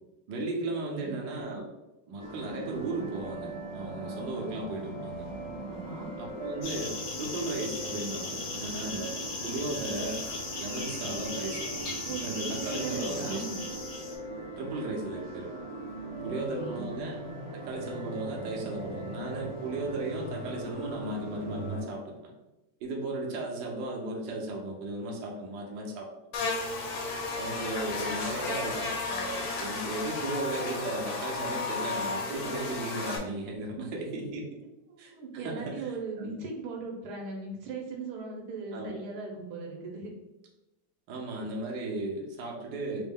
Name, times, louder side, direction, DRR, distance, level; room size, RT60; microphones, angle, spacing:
voice 1, 0.3-1.7 2.1-5.3 6.2-9.1 9.4-10.2 10.6-11.8 12.2-13.4 14.6-15.5 16.2-17.2 17.5-22.3 22.8-26.1 27.4-34.4 35.0-35.9 36.2-36.4 38.7-39.0 41.1-43.0, right 2 dB, 65° right, -1 dB, 1.3 m, -35 dB
voice 2, 0.8-1.2 5.7-6.1 12.0-13.6 16.2-16.9 33.7-34.2 34.9-40.1, right 4 dB, 85° right, 0 dB, 1.5 m, -39 dB
sound 1, 2.2-21.8, right 1 dB, 40° right, 1.1 m, -40 dB
sound 2, 6.6-14.2, left 3 dB, 85° left, 1.9 m, -37 dB
Buzz, 26.3-33.2, left 3 dB, 65° left, 1.2 m, -33 dB
4.1 x 2.0 x 3.5 m, 0.99 s
omnidirectional pair, 2.3 m